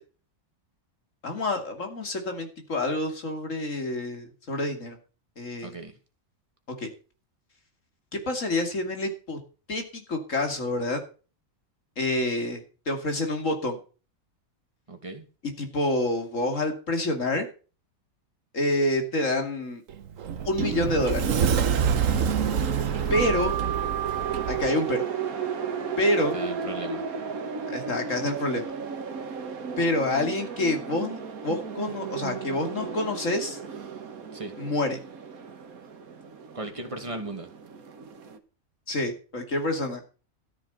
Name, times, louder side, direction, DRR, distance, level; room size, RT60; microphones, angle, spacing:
voice 1, 1.2-5.0 5.4-5.8 6.8-6.9 8.1-9.4 9.7-11.0 12.0-13.8 15.6-17.5 18.5-19.8 20.4-21.4 23.1-23.5 24.5-25.0 26.0-26.4 27.7-28.7 29.8-31.2 31.4-33.6 34.6-35.0 38.9-40.0, left 1 dB, 65° left, 5 dB, 3.0 m, -27 dB
voice 2, 14.9-15.2 22.6-22.8 26.3-27.0 34.3-34.5 36.5-37.5, right 2 dB, 25° right, 4 dB, 2.3 m, -36 dB
Sliding door, 19.9-24.7, right 7 dB, 70° right, 1.4 m, -26 dB
sound 1, 20.6-38.4, right 6 dB, 85° right, 1.9 m, -35 dB
13.5 x 7.4 x 6.8 m, 0.36 s
omnidirectional pair, 1.5 m